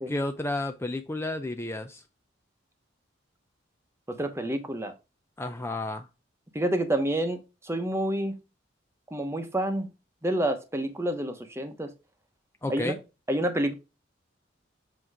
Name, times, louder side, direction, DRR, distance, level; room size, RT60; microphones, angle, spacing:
voice 1, 0.1-2.0 5.4-6.1 12.6-13.0, left 2 dB, 15° left, 0.4 m, -31 dB
voice 2, 4.1-4.9 6.5-8.4 9.1-9.9 10.2-11.9 12.7-12.9 13.3-13.7, right 1 dB, 15° right, 1.0 m, -28 dB
7.8 x 3.0 x 4.7 m
head